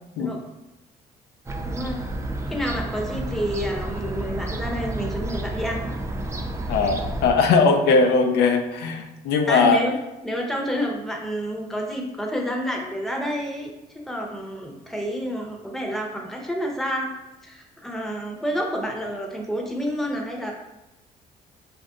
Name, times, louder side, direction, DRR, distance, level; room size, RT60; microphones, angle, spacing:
Fowl / Gull seagull, 1.5-7.3, right 1 dB, 15° right, 0.5 m, -30 dB
voice 1, 1.6-2.0 2.5-5.8 9.5-9.9 10.2-13.7 14.1-17.1 17.4-20.5, equal, ahead, 0 dB, 0.9 m, -29 dB
voice 2, 6.7-9.8, left 4 dB, 75° left, 5 dB, 0.5 m, -19 dB
5.1 x 2.6 x 3.6 m, 0.95 s
cardioid pair, 110°, 17 cm